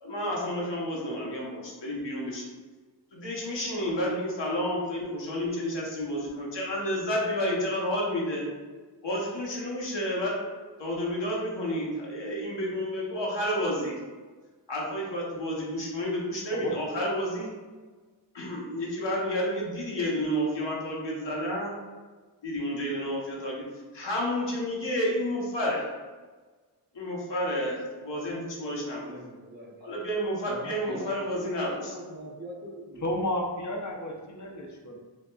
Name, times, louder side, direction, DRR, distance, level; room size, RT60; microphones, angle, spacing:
voice 1, 0.0-2.4 3.1-8.5 9.0-10.5 10.8-13.9 14.7-17.5 18.3-21.8 22.4-25.8 26.9-29.1 29.8-31.9, equal, 85° left, -3 dB, 1.0 m, -30 dB
voice 2, 29.1-29.8 30.5-33.1, equal, 25° right, -3 dB, 0.8 m, -42 dB
voice 3, 33.0-35.0, left 1 dB, 45° left, 1 dB, 0.7 m, -32 dB
6.0 x 2.2 x 2.2 m, 1.4 s
wide cardioid pair, 55°, 42 cm